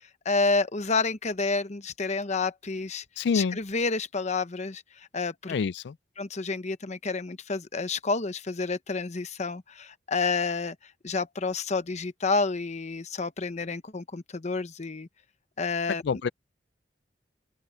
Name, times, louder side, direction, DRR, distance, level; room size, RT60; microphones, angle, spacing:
voice 1, 0.2-3.0 3.3-4.8 5.1-5.5 6.2-10.8 11.0-15.1 15.6-16.2, left 4 dB, 40° left, 0.9 m, -29 dB
voice 2, 3.2-3.6 5.5-5.9 16.0-16.3, left 5 dB, 65° left, 0.4 m, -27 dB
open air
head